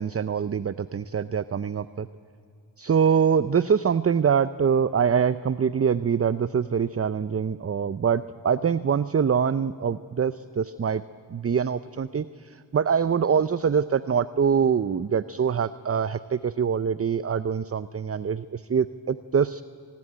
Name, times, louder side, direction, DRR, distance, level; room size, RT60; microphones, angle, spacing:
voice 1, 0.0-2.1 2.8-11.0 11.3-19.6, right 7 dB, 30° right, 15 dB, 0.6 m, -24 dB
25.5 x 19.5 x 8.8 m, 2.5 s
cardioid pair, 65°, 45 cm